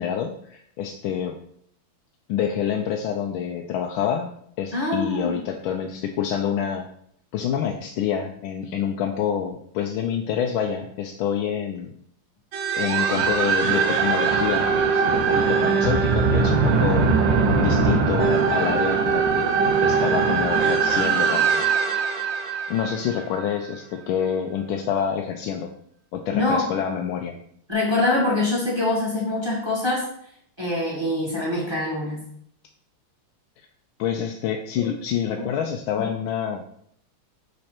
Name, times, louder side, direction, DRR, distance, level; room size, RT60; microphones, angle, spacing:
voice 1, 0.0-1.4 2.3-6.9 7.3-11.9 12.8-21.7 22.7-25.7 26.1-27.4 34.0-36.6, left 8 dB, 75° left, 3 dB, 1.3 m, -27 dB
voice 2, 4.7-5.4 26.3-26.6 27.7-30.0 30.6-32.2 36.0-36.1, left 2 dB, 10° right, -4 dB, 1.9 m, -24 dB
sound 1, 12.5-23.7, right 5 dB, 65° right, 1.4 m, -21 dB
6.5 x 4.1 x 4.3 m, 0.67 s
omnidirectional pair, 2.4 m